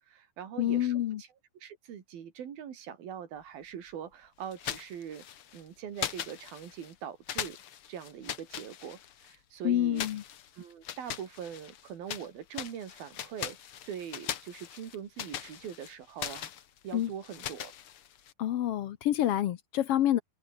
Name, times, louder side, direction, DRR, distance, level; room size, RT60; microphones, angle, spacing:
voice 1, 0.1-0.9 1.2-1.3 1.6-5.2 5.5-7.6 7.9-10.1 10.5-16.5 16.8-17.7, right 8 dB, 90° right, 4.6 m, -42 dB
voice 2, 0.6-1.2 9.6-10.2 16.9-17.1 18.4-20.2, left 12 dB, 85° left, 1.3 m, -27 dB
sound 1, 4.5-5.6 6.0-6.9 7.3-9.4 9.9-12.3 12.5-18.3, left 10 dB, 55° left, 1.6 m, -40 dB
open air
omnidirectional pair, 4.1 m